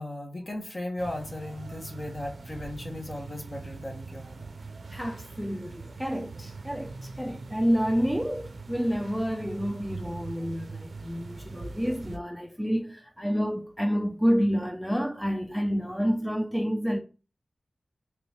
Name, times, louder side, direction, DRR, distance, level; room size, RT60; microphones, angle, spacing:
voice 1, 0.0-4.4, left 1 dB, 45° left, 1.0 m, -36 dB
sound 1, 1.0-12.2, right 3 dB, 75° right, 0.4 m, -42 dB
voice 2, 4.9-17.0, equal, ahead, 0.4 m, -29 dB
3.0 x 2.8 x 3.4 m
wide cardioid pair, 60°, 0 cm